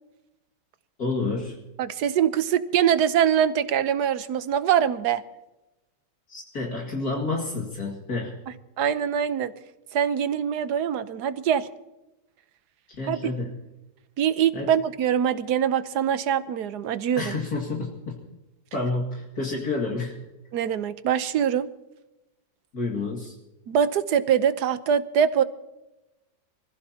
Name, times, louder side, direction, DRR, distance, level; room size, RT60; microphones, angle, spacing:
voice 1, 1.0-1.6 6.3-8.3 12.9-13.5 14.5-14.7 17.2-18.2 18.7-20.1 22.7-23.3, left 3 dB, 60° left, -1 dB, 2.7 m, -29 dB
voice 2, 1.8-5.2 8.8-9.5 9.9-11.7 13.1-13.2 14.2-17.4 20.5-21.7 23.7-25.4, right 8 dB, 70° right, 13 dB, 1.3 m, -23 dB
25.0 x 15.5 x 2.9 m, 0.98 s
omnidirectional pair, 1.9 m